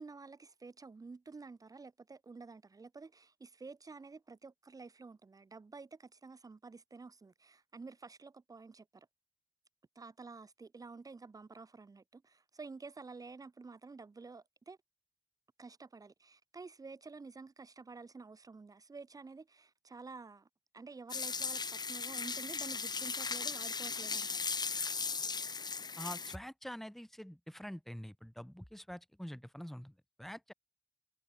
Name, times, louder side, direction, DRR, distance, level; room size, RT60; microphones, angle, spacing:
voice 1, 0.0-9.1 9.9-14.8 15.6-20.5 20.7-24.5, right 4 dB, 50° right, 2.8 m, -51 dB
sound 1, 21.1-26.4, left 5 dB, 60° left, 1.4 m, -37 dB
voice 2, 26.0-29.9 30.2-30.5, equal, 5° left, 6.5 m, -46 dB
wide cardioid pair, 125°, 8 cm